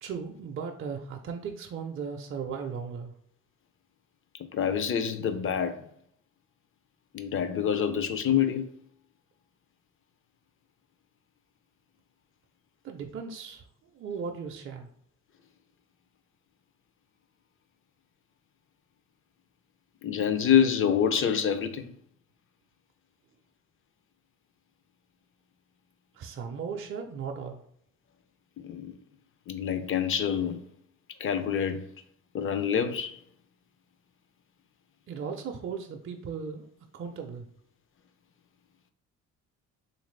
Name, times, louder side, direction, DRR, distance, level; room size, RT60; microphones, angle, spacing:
voice 1, 0.0-3.1 12.8-13.6 13.9-14.9 26.1-27.6 35.1-36.6 36.9-37.5, right 6 dB, 45° right, 0.5 m, -37 dB
voice 2, 4.5-5.8 7.1-8.7 20.0-21.9 28.6-28.9 29.5-30.6 31.2-31.9 32.3-33.2, left 8 dB, 45° left, 0.4 m, -26 dB
3.4 x 2.5 x 3.1 m
cardioid pair, 90°, 30 cm